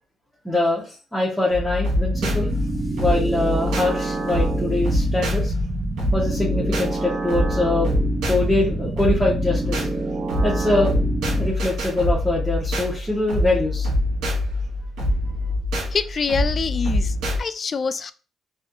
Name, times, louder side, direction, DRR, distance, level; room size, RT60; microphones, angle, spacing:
voice 1, 0.4-2.5 3.0-5.5 6.1-7.9 8.2-9.9 10.4-10.9 11.4-13.9, left 2 dB, 5° left, -5 dB, 1.0 m, -23 dB
sound 1, 1.5-17.4, left 1 dB, 85° right, 1.1 m, -25 dB
sound 2, 2.1-11.5, right 3 dB, 35° right, 0.7 m, -28 dB
voice 2, 15.9-18.1, left 5 dB, 40° left, 13 dB, 0.3 m, -26 dB
3.3 x 2.5 x 2.6 m, 0.35 s
cardioid pair, 90°, 0 cm